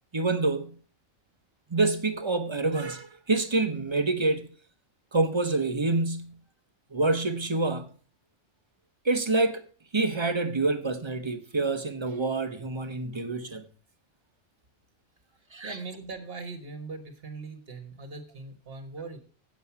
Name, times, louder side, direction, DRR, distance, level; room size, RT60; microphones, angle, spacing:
voice 1, 0.1-0.8 1.7-4.5 5.1-6.4 6.9-7.9 9.0-9.6 9.9-13.6 15.5-15.8, right 3 dB, 25° right, 0.8 m, -27 dB
voice 2, 15.6-19.2, right 3 dB, 50° right, 1.7 m, -40 dB
8.2 x 7.8 x 5.8 m
omnidirectional pair, 1.3 m